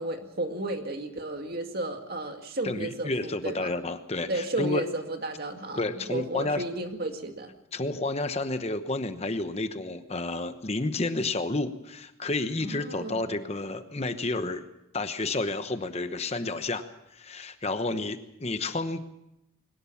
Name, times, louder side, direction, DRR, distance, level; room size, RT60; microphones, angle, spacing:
voice 1, 0.0-3.7 4.3-7.5 12.6-13.3, right 2 dB, 45° right, 5 dB, 2.2 m, -33 dB
voice 2, 2.6-4.8 5.8-6.6 7.7-14.6 14.9-16.9 17.1-19.0, left 2 dB, 30° left, 9 dB, 1.0 m, -30 dB
21.5 x 19.0 x 7.2 m, 0.83 s
head